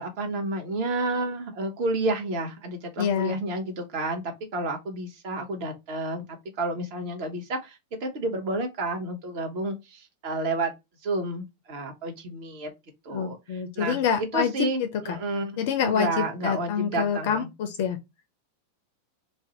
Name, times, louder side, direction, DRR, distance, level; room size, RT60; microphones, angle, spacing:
voice 1, 0.0-10.7 11.0-12.7 13.0-14.0 14.3-17.5, right 2 dB, 45° right, 0.8 m, -30 dB
voice 2, 3.0-3.4 13.1-14.5 14.8-15.2 15.6-18.0, left 7 dB, 50° left, 0.4 m, -27 dB
2.6 x 2.1 x 3.8 m
figure-of-eight pair, 90°, 0 cm